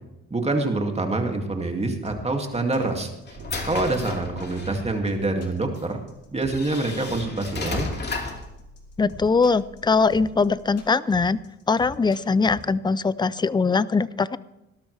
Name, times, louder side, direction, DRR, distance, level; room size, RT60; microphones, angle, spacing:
voice 1, 0.3-3.1 3.6-6.0 6.3-7.9, right 2 dB, 20° right, 3 dB, 2.3 m, -26 dB
sound 1, 2.0-12.6, left 3 dB, 55° left, 2.9 m, -43 dB
sound 2, 2.4-4.9 5.8-5.9 6.5-8.5, left 3 dB, 35° left, 2.4 m, -33 dB
sound 3, 3.3-10.8, right 1 dB, 60° right, 2.9 m, -46 dB
voice 2, 9.0-11.4 11.7-14.4, left 4 dB, 15° left, 19 dB, 0.4 m, -21 dB
18.0 x 12.5 x 3.3 m, 0.96 s
cardioid pair, 90°, 30 cm